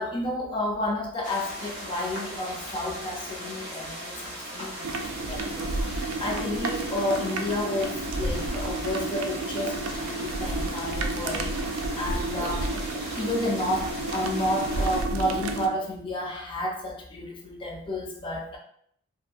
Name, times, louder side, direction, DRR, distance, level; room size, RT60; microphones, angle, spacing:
voice 1, 0.0-18.6, left 1 dB, 25° left, 0 dB, 0.3 m, -31 dB
sound 1, 1.2-15.0, equal, 55° right, 0.9 m, -38 dB
sound 2, 4.8-15.7, right 2 dB, 75° right, 0.3 m, -31 dB
2.4 x 2.3 x 2.5 m, 0.67 s
head